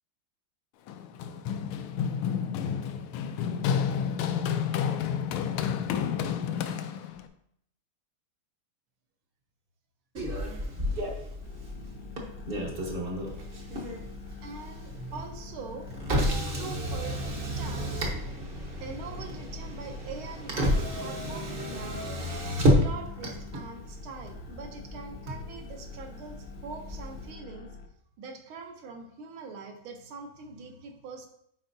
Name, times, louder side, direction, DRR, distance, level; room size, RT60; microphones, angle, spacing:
Run, 0.9-7.3, left 8 dB, 85° left, 1.5 m, -30 dB
Motor vehicle (road), 10.1-27.3, equal, 40° right, 0.8 m, -32 dB
sound 1, 11.4-27.9, left 4 dB, 65° left, 0.9 m, -46 dB
voice 1, 14.4-15.9 16.5-18.1 18.8-22.3 22.8-27.7 28.2-31.3, right 4 dB, 75° right, 4 dB, 1.7 m, -43 dB
9.8 x 4.5 x 2.7 m, 0.71 s
omnidirectional pair, 2.4 m